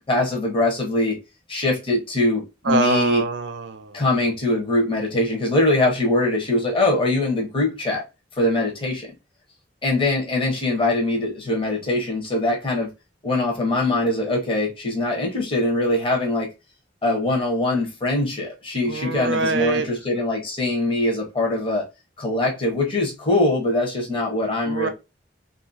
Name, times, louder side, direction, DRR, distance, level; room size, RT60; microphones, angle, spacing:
voice 1, 0.1-1.2 1.5-3.2 3.9-8.0 8.4-9.1 9.8-12.9 13.2-16.5 17.0-21.8 22.2-24.9, left 2 dB, 30° left, 1.0 m, -22 dB
voice 2, 2.6-4.0 18.8-19.9 24.6-24.9, right 4 dB, 75° right, 0.6 m, -24 dB
2.8 x 2.7 x 2.6 m
head